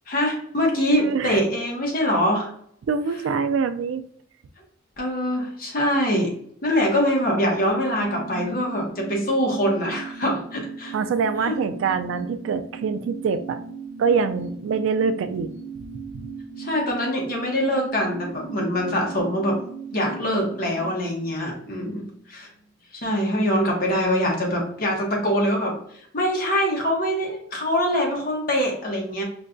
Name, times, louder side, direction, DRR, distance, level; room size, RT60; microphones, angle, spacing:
voice 1, 0.1-2.5 5.0-6.3 6.6-10.9 11.4-11.6 16.6-19.6 19.9-22.0 22.3-22.5 22.9-25.8 26.1-29.2, equal, 50° left, -1 dB, 1.0 m, -23 dB
voice 2, 1.0-1.4 2.9-4.0 10.9-13.6 14.0-15.5, right 5 dB, 80° right, 10 dB, 0.3 m, -24 dB
sound 1, 7.2-22.3 22.6-22.7, right 5 dB, 65° left, 1.1 m, -38 dB
5.2 x 2.2 x 2.5 m, 0.65 s
head